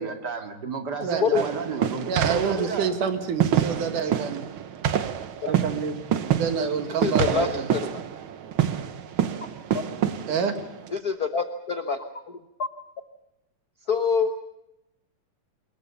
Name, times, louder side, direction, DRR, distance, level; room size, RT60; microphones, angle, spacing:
voice 1, 0.0-2.9, right 5 dB, 35° right, 2.3 m, -32 dB
voice 2, 1.0-1.4 2.1-4.5 5.5-5.9 6.3-7.7 10.3-10.5, right 6 dB, 85° right, 3.2 m, -27 dB
sound 1, 1.3-11.0, right 9 dB, 65° right, 1.4 m, -27 dB
voice 3, 7.0-8.0 10.9-12.7 13.9-14.3, left 5 dB, 85° left, 0.8 m, -26 dB
25.5 x 21.5 x 7.0 m
omnidirectional pair, 3.5 m